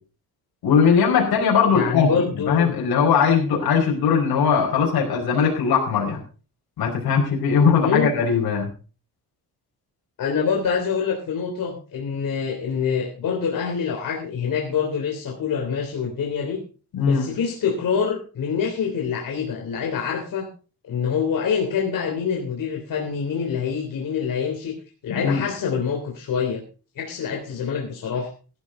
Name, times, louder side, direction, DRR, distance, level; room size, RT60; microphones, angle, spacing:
voice 1, 0.6-6.2 6.8-8.7 16.9-17.3 25.1-25.4, left 6 dB, 90° left, 0 dB, 5.0 m, -20 dB
voice 2, 1.7-2.8 7.8-8.1 10.2-16.6 17.0-20.5 20.8-24.8 25.0-26.6 27.0-28.3, left 6 dB, 60° left, 0 dB, 3.4 m, -25 dB
17.0 x 11.5 x 3.9 m, 0.36 s
cardioid pair, 155°, 36 cm